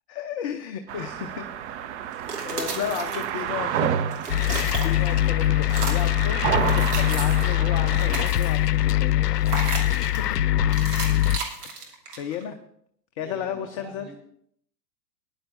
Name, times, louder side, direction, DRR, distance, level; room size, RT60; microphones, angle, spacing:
voice 1, 0.1-1.5 2.4-4.0 4.8-9.4 11.7-12.6 13.2-14.1, left 9 dB, 25° left, 6 dB, 0.4 m, -33 dB
sound 1, 0.9-8.3, right 9 dB, 45° right, 0.8 m, -30 dB
sound 2, 2.1-3.7 4.0-5.3 5.6-6.2 6.6-7.5 7.9-8.7 9.4-10.3 10.7-12.4, right 4 dB, 65° right, 2.8 m, -34 dB
voice 2, 2.7-3.9 13.2-14.2, left 2 dB, ahead, -1 dB, 3.9 m, -46 dB
sound 3, 4.3-11.4, left 14 dB, 70° left, 0.6 m, -22 dB
20.0 x 10.5 x 2.6 m, 0.69 s
figure-of-eight pair, 100°, 50 cm